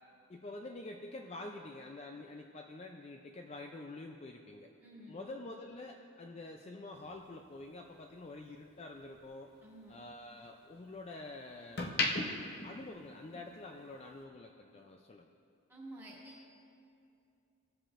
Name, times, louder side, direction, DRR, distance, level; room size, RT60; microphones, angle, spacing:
voice 1, 0.3-4.7 5.1-9.5 9.9-11.8 12.4-15.3, left 2 dB, 30° left, 2 dB, 0.3 m, -47 dB
voice 2, 4.8-5.2 9.6-9.9 15.7-16.5, right 1 dB, 10° right, -6 dB, 2.0 m, -51 dB
sound 1, 6.9-9.3 9.7-11.1 11.5-13.7 14.0-14.2, left 2 dB, 45° left, 0.8 m, -38 dB
18.0 x 7.6 x 2.5 m, 2.5 s
head